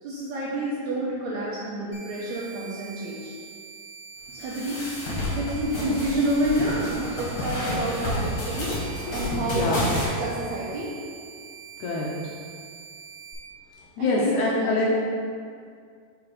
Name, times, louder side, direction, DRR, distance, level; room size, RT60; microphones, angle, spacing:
voice 1, 0.0-3.3 4.3-10.9 14.0-15.0, right 1 dB, 75° right, -6 dB, 1.7 m, -29 dB
sound 1, 1.9-13.3, right 6 dB, 55° right, 0.7 m, -44 dB
sound 2, 4.4-10.1, left 1 dB, 45° left, 2.0 m, -30 dB
voice 2, 9.6-9.9 11.8-12.1 14.0-15.0, left 2 dB, 75° left, -4 dB, 1.8 m, -24 dB
4.8 x 4.8 x 4.8 m, 2.2 s
omnidirectional pair, 4.0 m